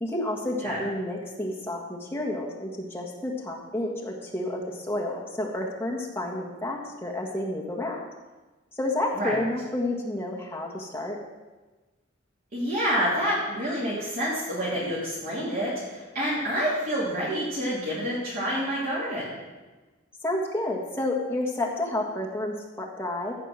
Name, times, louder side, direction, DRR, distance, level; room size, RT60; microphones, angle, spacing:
voice 1, 0.0-8.1 8.8-11.2 20.2-23.4, left 1 dB, 10° left, -2 dB, 1.5 m, -30 dB
voice 2, 12.5-19.4, equal, 45° right, -9 dB, 2.9 m, -28 dB
14.5 x 5.0 x 6.1 m, 1.2 s
head